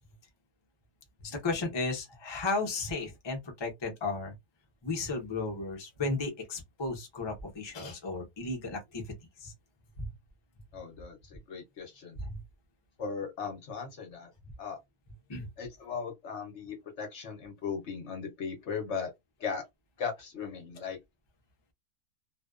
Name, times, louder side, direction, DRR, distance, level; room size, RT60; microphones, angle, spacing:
voice 1, 1.2-4.3 4.8-9.0 9.4-9.5 10.0-10.1 12.2-12.4 15.3-15.5, left 3 dB, 30° left, 0.5 m, -34 dB
voice 2, 10.7-12.2 13.0-14.3 14.6-14.8 15.6-19.1 19.4-19.6 20.0-21.0, left 6 dB, 60° left, 0.9 m, -37 dB
2.5 x 2.2 x 2.3 m
omnidirectional pair, 1.6 m